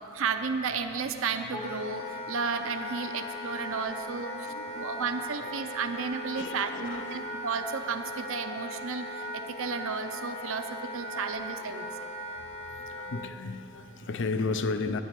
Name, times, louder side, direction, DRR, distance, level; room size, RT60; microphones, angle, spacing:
voice 1, 0.1-10.7 10.9-11.8, right 5 dB, 65° right, 0.6 m, -33 dB
Wind instrument woodwind instrument, 1.5-13.3, left 1 dB, 30° left, 0.9 m, -39 dB
voice 2, 4.2-5.0 5.3-5.5 6.3-7.6 11.1-12.3 12.6-15.0, left 3 dB, 55° left, 0.6 m, -36 dB
10.5 x 9.4 x 8.4 m
head